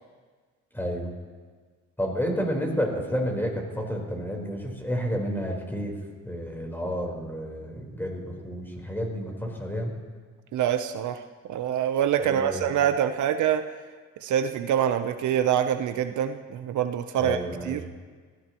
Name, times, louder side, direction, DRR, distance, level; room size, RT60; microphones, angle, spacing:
voice 1, 0.7-1.1 2.0-6.0 6.2-10.0 12.2-12.8 17.1-17.9, equal, 5° left, 0 dB, 4.2 m, -30 dB
voice 2, 10.5-11.2 11.5-13.6 14.2-17.4 17.7-17.8, right 10 dB, 75° right, 8 dB, 0.8 m, -25 dB
24.0 x 16.0 x 3.1 m, 1.5 s
cardioid pair, 90°, 30 cm